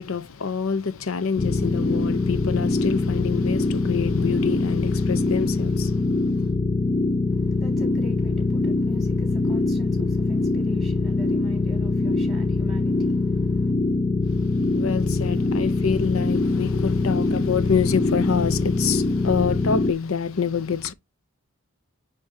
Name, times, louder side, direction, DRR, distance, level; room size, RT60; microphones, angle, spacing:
voice 1, 0.0-6.5 14.2-20.9, left 6 dB, 75° left, 0.6 m, -26 dB
sound 1, 1.4-19.9, left 3 dB, 25° left, 0.4 m, -23 dB
voice 2, 7.3-13.7, equal, ahead, 3.6 m, -42 dB
9.5 x 3.7 x 2.7 m
head